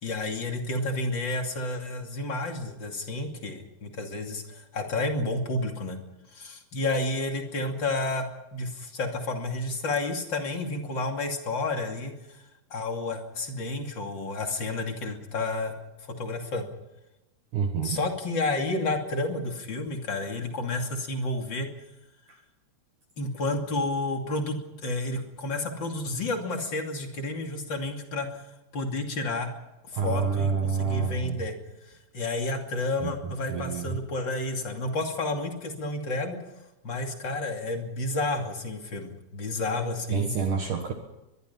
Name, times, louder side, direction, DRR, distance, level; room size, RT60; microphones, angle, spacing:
voice 1, 0.0-6.0 6.3-12.4 12.7-15.7 16.0-16.7 17.8-21.7 23.2-28.5 28.7-29.5 29.9-31.5 31.9-36.6 36.8-40.3, left 2 dB, 30° left, 3 dB, 2.6 m, -31 dB
voice 2, 17.5-18.0 22.3-22.4 29.9-31.4 33.0-34.0 40.1-40.9, right 6 dB, 60° right, 4 dB, 2.6 m, -28 dB
24.0 x 22.0 x 5.7 m, 0.97 s
omnidirectional pair, 4.8 m